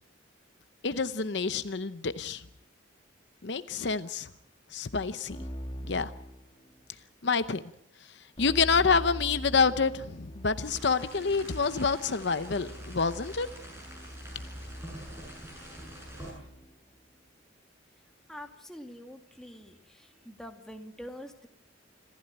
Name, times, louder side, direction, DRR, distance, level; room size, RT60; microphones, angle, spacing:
voice 1, 0.8-2.4 3.4-4.3 4.7-5.4 5.9-6.1 7.2-7.6 8.4-13.5, left 5 dB, 60° left, 12 dB, 0.8 m, -27 dB
Keyboard (musical), 5.3-7.0 8.4-16.8, equal, 30° left, 2.3 m, -43 dB
sound 1, 10.6-16.3, right 1 dB, 15° right, 7.3 m, -46 dB
voice 2, 18.3-21.5, equal, 5° left, 3 dB, 2.2 m, -45 dB
27.0 x 15.0 x 8.8 m, 0.78 s
head